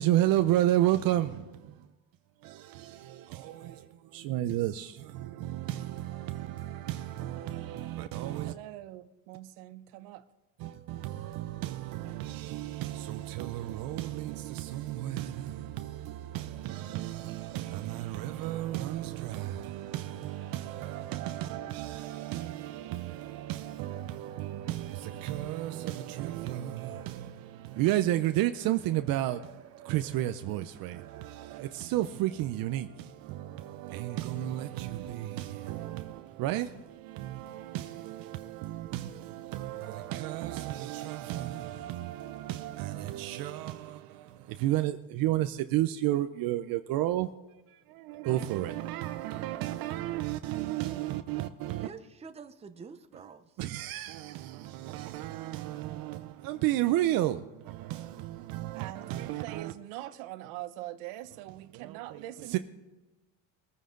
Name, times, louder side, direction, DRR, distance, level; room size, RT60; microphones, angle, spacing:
voice 1, 0.0-1.9 2.4-8.5 10.6-47.3 47.7-51.9 53.6-59.7 61.7-62.6, right 14 dB, 55° right, 0.7 m, -33 dB
voice 2, 8.4-10.2 58.7-62.6, right 15 dB, 80° right, 0.9 m, -43 dB
sound 1, 16.4-31.6, right 9 dB, 35° right, 1.2 m, -54 dB
voice 3, 51.8-53.6, right 5 dB, 15° right, 0.7 m, -47 dB
22.0 x 9.3 x 3.8 m
cardioid pair, 130°, 42 cm